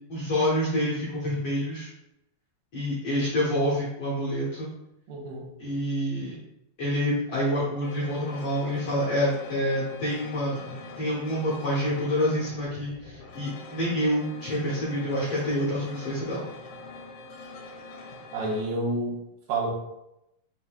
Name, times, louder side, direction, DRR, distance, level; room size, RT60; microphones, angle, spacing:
voice 1, 0.1-1.9 2.7-4.7 5.6-6.4 6.8-16.4, equal, 65° left, -8 dB, 1.5 m, -27 dB
voice 2, 5.1-5.5 18.3-19.2 19.5-19.7, right 2 dB, 85° right, -3 dB, 2.7 m, -29 dB
sound 1, 7.8-18.6, left 3 dB, 85° left, 2.7 m, -44 dB
7.2 x 2.7 x 2.3 m, 0.85 s
omnidirectional pair, 4.0 m